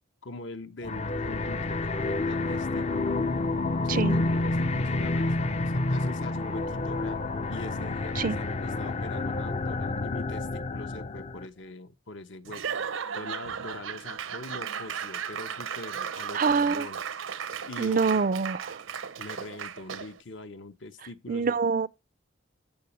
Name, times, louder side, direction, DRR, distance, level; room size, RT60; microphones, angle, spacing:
voice 1, 0.2-3.2 3.8-12.6 13.1-17.0 17.6-18.3 19.2-21.6, left 2 dB, 60° left, 1.0 m, -42 dB
sound 1, 0.8-11.5, left 2 dB, 35° left, 0.6 m, -29 dB
Laughter / Applause / Crowd, 12.4-20.2, right 7 dB, 80° right, 0.7 m, -36 dB
voice 2, 16.3-16.9 17.8-18.8 21.3-21.9, right 5 dB, 45° right, 0.4 m, -25 dB
14.5 x 5.0 x 3.1 m
head